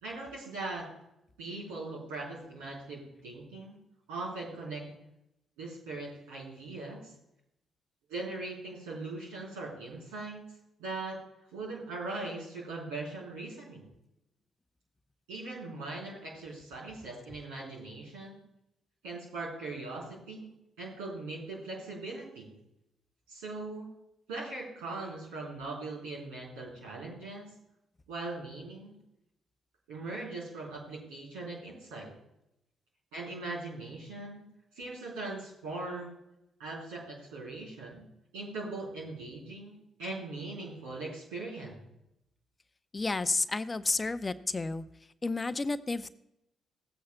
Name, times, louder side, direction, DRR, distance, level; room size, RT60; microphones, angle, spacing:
voice 1, 0.0-0.9 1.4-3.8 4.1-4.8 5.6-7.1 8.1-10.4 10.8-11.2 11.5-13.9 15.3-18.4 19.0-20.5 20.8-22.5 23.3-23.9 24.3-27.5 28.1-28.9 29.9-32.1 33.1-34.4 34.8-36.2 36.6-38.1 38.3-41.8, right 2 dB, 80° right, -4 dB, 3.7 m, -40 dB
voice 2, 42.9-44.8 45.2-46.1, left 3 dB, 30° left, 14 dB, 0.5 m, -31 dB
16.5 x 8.5 x 2.2 m, 0.82 s
hypercardioid pair, 45°, 0 cm